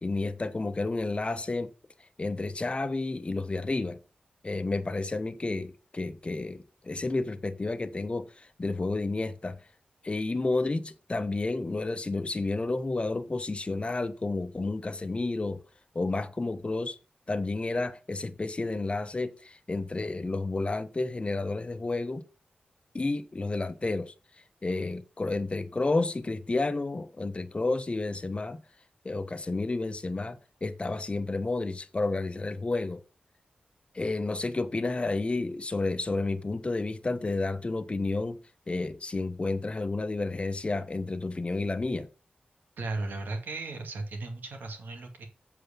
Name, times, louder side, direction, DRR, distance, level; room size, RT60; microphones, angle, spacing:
voice 1, 0.0-1.7 2.2-4.0 4.4-9.6 10.0-15.6 15.9-17.0 17.3-22.2 22.9-24.1 24.6-28.6 29.0-33.0 33.9-38.4 38.7-42.1, left 3 dB, 35° left, 1.0 m, -31 dB
voice 2, 42.8-45.3, right 2 dB, 85° right, 2.2 m, -36 dB
8.0 x 4.7 x 6.9 m
cardioid pair, 60°, 3 cm